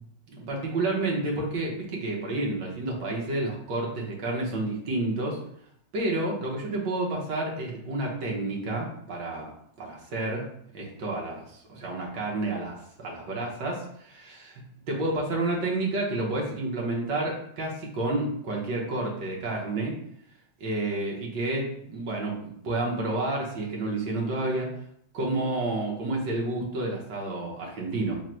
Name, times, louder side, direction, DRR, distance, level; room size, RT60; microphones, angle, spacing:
voice 1, 0.3-5.4 5.9-9.5 9.8-10.5 10.7-19.9 20.6-24.7 25.1-28.2, right 2 dB, 80° right, -2 dB, 1.6 m, -30 dB
3.9 x 2.0 x 4.3 m, 0.70 s
omnidirectional pair, 1.8 m